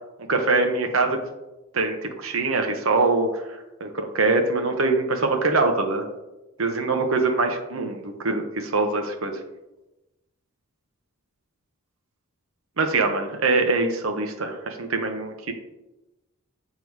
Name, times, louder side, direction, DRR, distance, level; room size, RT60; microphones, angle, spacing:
voice 1, 0.3-1.2 1.7-6.0 6.6-9.4 12.8-15.5, right 3 dB, 75° right, 5 dB, 0.8 m, -23 dB
7.8 x 3.7 x 4.6 m, 0.99 s
head